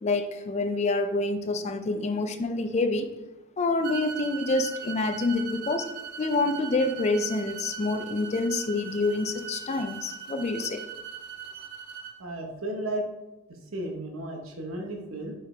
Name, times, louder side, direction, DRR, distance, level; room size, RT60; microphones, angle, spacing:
voice 1, 0.0-3.1 3.6-5.9 6.2-10.8, left 2 dB, 35° left, 9 dB, 0.4 m, -27 dB
sound 1, 3.8-12.1, right 8 dB, 50° right, 1.0 m, -40 dB
voice 2, 12.2-13.0 13.7-15.3, right 1 dB, 80° right, 2 dB, 1.0 m, -33 dB
5.0 x 4.8 x 4.3 m, 1.0 s
head